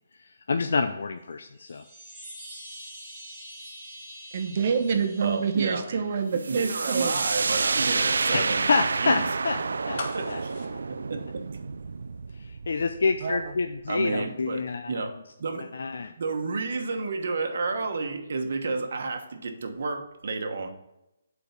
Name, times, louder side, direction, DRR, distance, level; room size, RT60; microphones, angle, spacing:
voice 1, 0.5-1.8 8.3-9.6 9.9-10.0 10.3-10.4 10.7-10.8 12.4-14.9 15.7-16.1, left 4 dB, 70° left, 7 dB, 0.5 m, -27 dB
sound 1, 1.5-6.6, equal, 5° right, 2.0 m, -45 dB
voice 2, 4.3-7.3 13.2-13.5, right 6 dB, 40° right, 5 dB, 0.9 m, -27 dB
voice 3, 5.2-6.0 6.5-8.7 9.0-9.3 10.0-10.5 10.9-11.4 13.9-15.8 16.2-20.7, right 3 dB, 55° right, 4 dB, 1.2 m, -31 dB
sound 2, 6.4-14.0, right 4 dB, 90° right, 0.4 m, -29 dB
sound 3, 9.9-12.0 12.3-12.4, left 3 dB, 45° left, 1.1 m, -39 dB
6.8 x 4.6 x 5.2 m, 0.89 s
hypercardioid pair, 175°, 0 cm